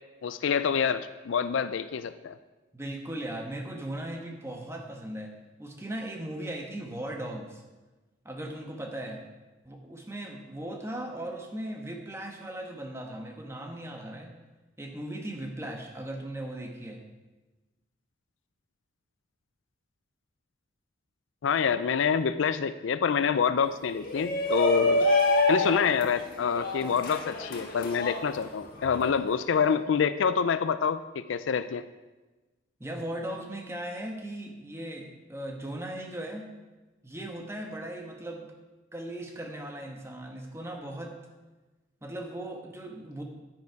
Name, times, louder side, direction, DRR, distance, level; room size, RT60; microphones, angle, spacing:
voice 1, 0.2-2.4 21.4-25.1 25.5-31.8, left 6 dB, 80° left, 12 dB, 0.4 m, -27 dB
voice 2, 2.7-5.3 5.6-7.6 8.2-9.2 9.6-14.4 14.8-17.0 32.8-36.5 37.0-38.5 38.9-41.2 42.0-43.2, right 1 dB, 15° right, 2 dB, 1.2 m, -38 dB
Shout, 24.0-29.1, left 2 dB, 50° left, 1.4 m, -27 dB
9.6 x 9.5 x 4.7 m, 1.2 s
head